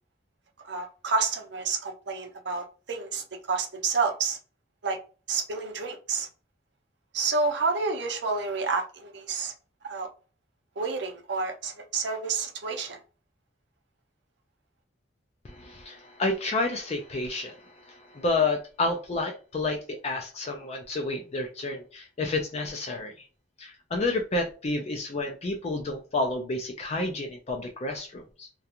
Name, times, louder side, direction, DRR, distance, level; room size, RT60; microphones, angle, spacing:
voice 1, 0.6-4.4 4.8-5.0 5.3-6.3 7.1-9.5 9.8-10.1 10.8-13.0, right 4 dB, 65° right, 0.6 m, -29 dB
voice 2, 15.4-23.2 23.6-28.5, left 2 dB, 35° left, 0.4 m, -30 dB
2.4 x 2.3 x 2.8 m
head